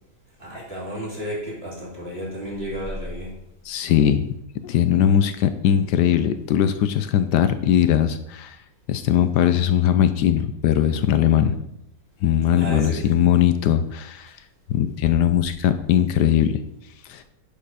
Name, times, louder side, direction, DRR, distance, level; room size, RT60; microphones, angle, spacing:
voice 1, 0.4-3.3 12.5-13.3, equal, 35° right, -5 dB, 3.3 m, -32 dB
voice 2, 3.7-4.3 4.6-8.6 8.9-11.6 12.2-14.3 14.7-16.6 17.1-17.2, left 10 dB, 80° left, 11 dB, 1.2 m, -20 dB
10.0 x 4.7 x 4.9 m, 0.78 s
omnidirectional pair, 1.8 m